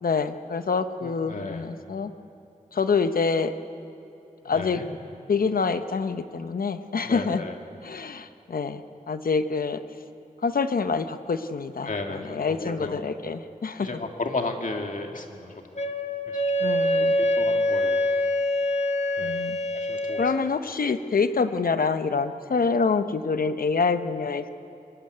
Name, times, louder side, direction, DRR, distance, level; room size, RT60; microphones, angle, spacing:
voice 1, 0.0-2.1 2.7-3.5 4.4-4.8 5.3-7.4 7.8-9.8 10.4-13.9 16.6-17.2 19.2-19.6 20.2-24.5, left 5 dB, 85° left, 10 dB, 0.8 m, -26 dB
voice 2, 1.0-1.7 4.5-4.9 7.0-7.5 11.8-13.1 13.8-15.7 16.3-16.4 17.0-18.1 19.2-19.4 19.7-20.2, left 3 dB, 65° left, 3 dB, 2.0 m, -34 dB
Wind instrument woodwind instrument, 15.7-20.4, left 1 dB, 50° left, 1.2 m, -25 dB
22.5 x 13.0 x 9.4 m, 2.8 s
cardioid pair, 45°, 15 cm